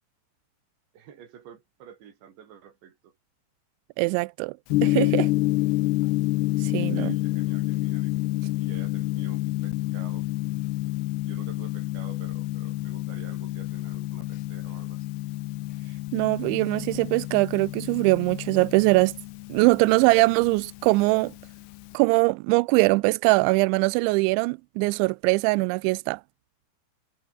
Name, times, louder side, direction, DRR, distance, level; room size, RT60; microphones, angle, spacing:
voice 1, 0.9-3.2 6.8-8.2 8.6-10.3 10.9-11.0 11.2-15.2, right 8 dB, 65° right, 5.5 m, -49 dB
voice 2, 4.0-4.5 4.8-5.3 6.6-7.2 16.1-19.1 19.5-21.3 21.9-26.2, right 25 dB, 85° right, 2.7 m, -22 dB
Gong, 4.7-21.9, left 19 dB, 85° left, 2.4 m, -29 dB
omnidirectional pair, 5.6 m